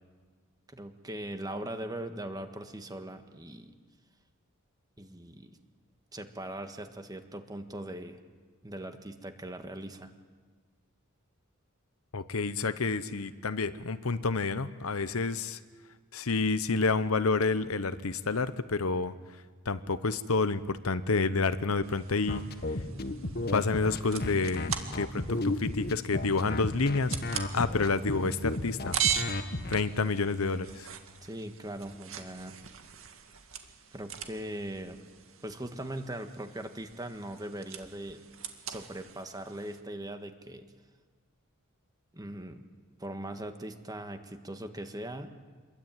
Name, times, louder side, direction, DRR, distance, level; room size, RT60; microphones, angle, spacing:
voice 1, 0.7-3.7 5.0-5.5 6.1-8.2 8.6-10.1 31.2-32.5 33.9-35.0 35.4-38.2 38.7-40.7 42.1-42.6 43.0-45.3, right 1 dB, 15° right, 7 dB, 1.6 m, -40 dB
voice 2, 12.1-15.6 16.1-19.1 19.7-22.4 23.5-29.0 29.7-30.9, left 3 dB, 75° left, 12 dB, 1.0 m, -29 dB
sound 1, 21.8-39.8, right 9 dB, 65° right, 2.2 m, -40 dB
sound 2, 22.3-29.8, left 2 dB, 45° left, 1.5 m, -33 dB
27.0 x 22.0 x 9.2 m, 1.5 s
head